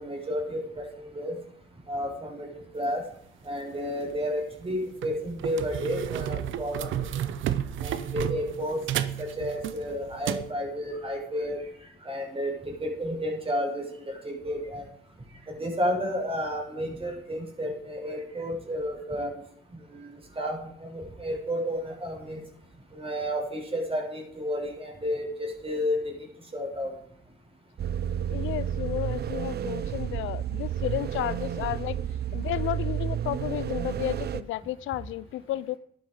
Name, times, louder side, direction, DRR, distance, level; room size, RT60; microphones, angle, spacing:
voice 1, 0.0-1.3 1.9-2.5 2.7-3.0 3.4-7.2 7.8-8.8 9.2-11.6 12.0-14.8 15.5-19.3 19.9-20.1 20.4-22.4 22.9-26.1 26.5-26.9, equal, 30° right, 5.9 m, -31 dB
sound 1, 3.9-4.1 4.6-4.7 5.0-10.5, right 11 dB, 75° right, 0.9 m, -32 dB
sound 2, 27.8-34.4, right 9 dB, 55° right, 0.6 m, -31 dB
voice 2, 28.3-32.0 32.3-35.8, left 14 dB, 80° left, 0.5 m, -32 dB
12.0 x 12.0 x 5.0 m
cardioid pair, 90°, 20 cm